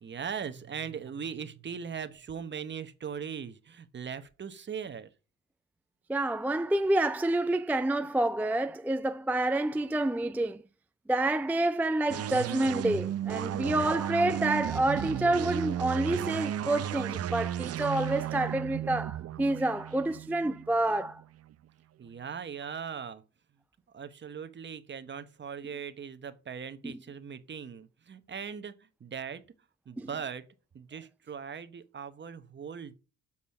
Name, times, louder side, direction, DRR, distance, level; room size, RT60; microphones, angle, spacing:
voice 1, 0.0-5.1 22.0-23.2 23.9-29.4 29.9-30.4 30.7-32.9, right 7 dB, 35° right, 1.0 m, -39 dB
voice 2, 6.1-10.6 11.1-21.2 26.8-26.9 30.0-30.1, right 2 dB, 5° right, 0.4 m, -28 dB
sound 1, 12.1-21.5, right 11 dB, 55° right, 0.6 m, -34 dB
7.2 x 4.1 x 6.4 m
cardioid pair, 90°, 30 cm